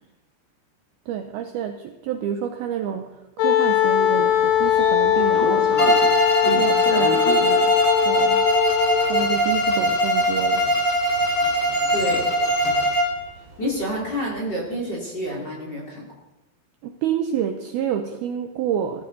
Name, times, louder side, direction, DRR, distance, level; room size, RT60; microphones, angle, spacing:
voice 1, 1.1-5.9 6.4-7.1 7.4-7.8 8.1-8.5 9.1-10.7 16.8-19.0, right 9 dB, 85° right, 5 dB, 2.2 m, -28 dB
Wind instrument woodwind instrument, 3.4-9.3, left 11 dB, 90° left, 3.5 m, -20 dB
Sliding door, 4.2-14.3, right 2 dB, 35° right, 4.0 m, -34 dB
Bowed string instrument, 5.8-13.2, equal, 45° left, 0.5 m, -21 dB
voice 2, 11.9-12.3 13.6-16.1, equal, 25° left, -3 dB, 3.2 m, -28 dB
21.0 x 14.0 x 4.1 m, 0.95 s
omnidirectional pair, 5.6 m